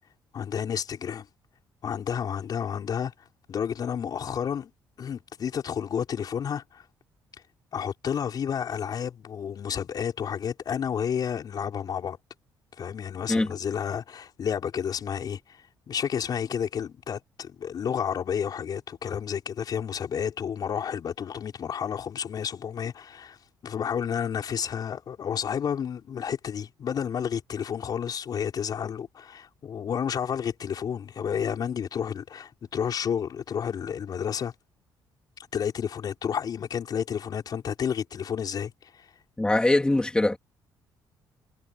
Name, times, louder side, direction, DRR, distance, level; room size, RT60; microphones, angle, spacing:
voice 1, 0.3-1.3 1.8-3.1 3.5-4.7 5.0-6.8 7.7-12.2 12.8-15.6 15.9-23.4 23.6-34.5 35.5-39.1, left 8 dB, 50° left, 6.0 m, -31 dB
voice 2, 39.4-40.4, left 2 dB, 10° left, 2.5 m, -22 dB
cardioid pair, 105°, 8 cm